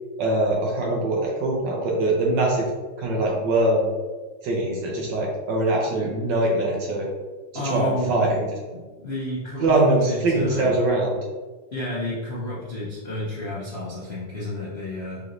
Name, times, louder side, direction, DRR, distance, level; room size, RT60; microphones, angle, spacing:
voice 1, 0.2-2.7 3.0-3.9 4.4-7.1 7.7-8.4 9.6-11.1, right 2 dB, 65° right, -2 dB, 1.1 m, -22 dB
voice 2, 7.5-8.3 8.7-10.7 11.7-15.2, left 1 dB, 90° left, -8 dB, 0.5 m, -31 dB
4.9 x 3.1 x 2.6 m, 1.3 s
omnidirectional pair, 2.4 m